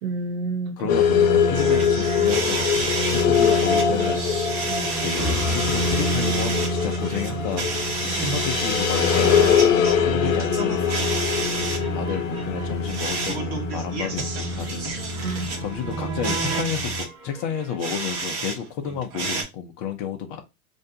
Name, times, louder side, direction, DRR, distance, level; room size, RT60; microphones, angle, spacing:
voice 1, 0.0-1.0 4.7-5.3 8.1-8.4 15.1-15.5 15.9-16.7, right 4 dB, 65° right, 0.7 m, -31 dB
voice 2, 0.8-4.4 5.0-7.7 8.1-11.1 11.9-15.0 15.6-20.4, left 7 dB, 25° left, 0.3 m, -31 dB
sound 1, 0.9-17.0, left 6 dB, 60° left, 0.7 m, -23 dB
sound 2, 1.5-18.5 18.8-19.4, right 4 dB, 40° right, 0.9 m, -31 dB
sound 3, 5.1-8.3, left 1 dB, 5° right, 0.9 m, -33 dB
2.5 x 2.2 x 2.6 m
hypercardioid pair, 105°, 44 cm